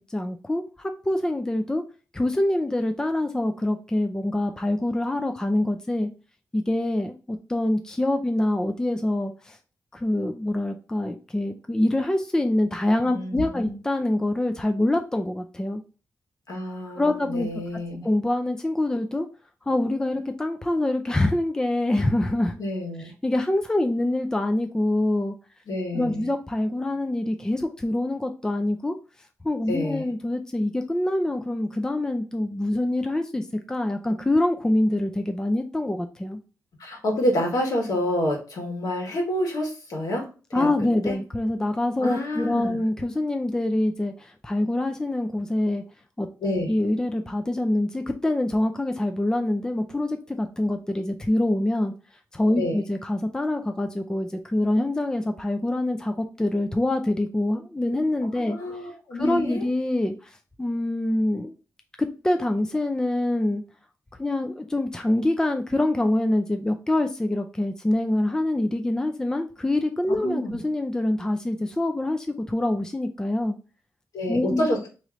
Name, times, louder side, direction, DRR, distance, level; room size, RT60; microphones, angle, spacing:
voice 1, 0.0-1.8 2.1-6.1 6.5-9.6 9.9-15.8 17.0-17.5 18.0-19.3 19.7-22.5 23.2-25.3 25.9-29.0 29.4-36.4 40.5-45.8 46.2-46.3 46.7-51.9 52.3-58.6 59.1-60.3 60.6-61.5 62.0-63.6 64.2-73.6 74.3-74.7, left 1 dB, 10° left, 5 dB, 0.4 m, -25 dB
voice 2, 13.1-13.8 16.5-18.0 22.6-23.1 25.7-26.2 29.7-30.1 36.8-40.3 40.5-40.7 41.1-41.2 42.0-42.8 46.4-46.7 52.6-52.8 58.4-59.7 70.2-70.6 74.1-74.8, left 1 dB, 75° left, 0 dB, 1.6 m, -28 dB
3.1 x 3.1 x 3.7 m, 0.34 s
wide cardioid pair, 115°, 6 cm